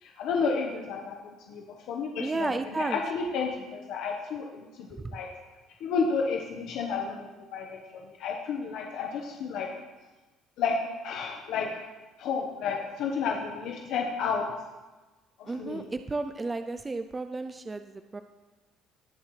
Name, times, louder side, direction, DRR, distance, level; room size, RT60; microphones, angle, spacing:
voice 1, 0.0-1.2 1.5-1.6 1.9-2.5 2.8-4.6 5.0-5.3 5.8-9.7 10.6-11.7 12.2-14.5 15.4-15.8, left 5 dB, 65° left, 1 dB, 1.1 m, -31 dB
voice 2, 2.2-3.0 15.5-18.2, right 3 dB, 15° right, 8 dB, 0.3 m, -33 dB
19.0 x 7.2 x 3.2 m, 1.2 s
cardioid pair, 160°, 0 cm